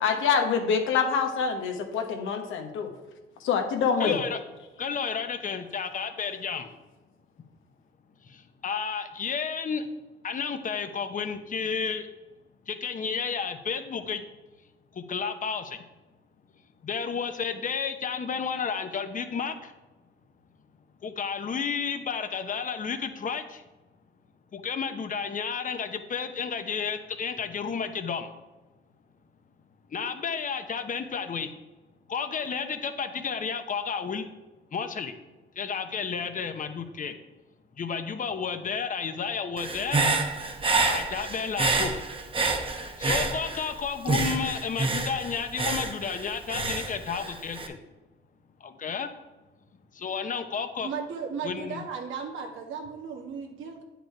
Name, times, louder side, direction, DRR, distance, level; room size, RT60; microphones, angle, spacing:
voice 1, 0.0-2.9 3.4-4.2, left 6 dB, 85° left, 5 dB, 1.2 m, -25 dB
voice 2, 4.0-4.4 4.8-6.7 8.6-9.8 10.2-12.1 12.7-14.2 15.1-15.8 16.8-19.5 21.0-23.4 24.5-28.3 29.9-31.5 32.1-34.3 34.7-35.1 35.6-37.1 37.8-40.0 40.9-41.9 43.0-47.8 48.6-49.1 50.0-50.9 51.4-51.8, left 6 dB, 40° left, 9 dB, 0.9 m, -31 dB
Human voice / Breathing, 39.6-43.7 44.1-47.7, right 3 dB, 25° right, 1.0 m, -28 dB
voice 3, 50.8-53.8, right 6 dB, 80° right, 2 dB, 1.5 m, -35 dB
9.2 x 5.2 x 4.5 m, 1.1 s
cardioid pair, 90°, 20 cm